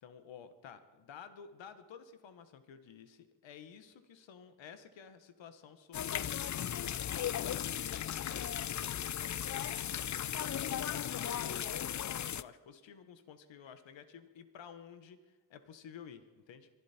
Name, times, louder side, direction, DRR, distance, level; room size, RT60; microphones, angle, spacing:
voice 1, 0.0-16.7, left 7 dB, 80° left, 10 dB, 1.4 m, -53 dB
sound 1, 5.9-12.4, left 10 dB, 40° left, 0.5 m, -36 dB
23.5 x 11.5 x 4.4 m, 1.3 s
cardioid pair, 55°, 44 cm